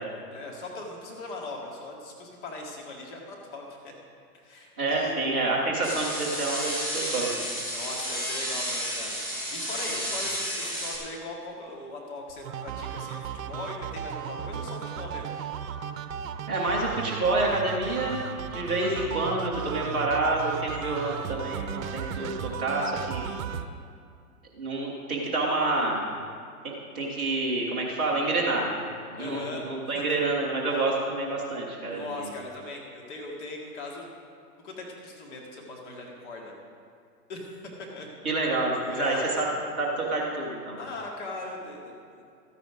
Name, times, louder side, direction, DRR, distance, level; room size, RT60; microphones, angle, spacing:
voice 1, 0.0-3.9 4.4-5.2 7.7-15.3 18.7-19.0 29.2-29.7 29.9-30.2 31.9-34.1 34.6-36.5 37.3-37.5 37.9-38.1 38.9-39.4 40.8-42.2, left 2 dB, 45° left, -1 dB, 2.2 m, -39 dB
voice 2, 4.8-7.4 9.9-10.0 16.5-18.2 18.5-23.3 24.6-26.0 26.6-28.7 29.1-32.0 38.2-39.5 39.8-40.8, right 2 dB, 5° right, -7 dB, 0.3 m, -28 dB
sound 1, 5.8-11.0, equal, 20° left, 3.5 m, -32 dB
sound 2, 12.4-23.7, right 8 dB, 60° right, 0.8 m, -35 dB
13.0 x 9.7 x 5.0 m, 2.4 s
hypercardioid pair, 130°, 46 cm